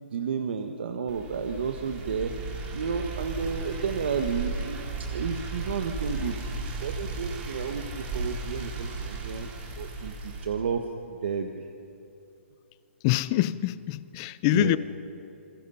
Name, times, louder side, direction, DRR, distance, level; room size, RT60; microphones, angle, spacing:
voice 1, 0.1-2.3 2.7-9.5 9.8-11.6 14.5-14.8, right 6 dB, 55° right, 5 dB, 1.4 m, -32 dB
sound 1, 1.1-10.5, right 3 dB, 15° right, 2.6 m, -35 dB
voice 2, 13.0-14.8, left 17 dB, 20° left, 17 dB, 0.4 m, -25 dB
28.5 x 21.5 x 5.7 m, 2.6 s
hypercardioid pair, 170°, 7 cm